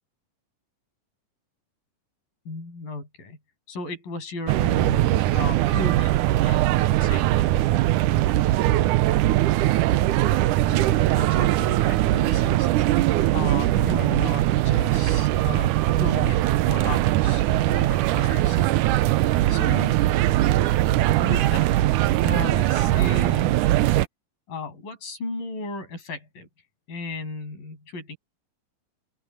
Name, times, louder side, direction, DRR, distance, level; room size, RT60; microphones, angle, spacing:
voice 1, 2.5-3.4 3.7-7.6 10.6-12.7 13.3-16.4 16.7-18.7 19.5-20.0 21.2-21.7 22.2-23.6 24.5-26.5 26.9-28.2, left 3 dB, 70° left, 9.1 m, -35 dB
sound 1, 4.5-24.1, right 15 dB, 80° right, 2.0 m, -21 dB
open air
omnidirectional pair, 4.1 m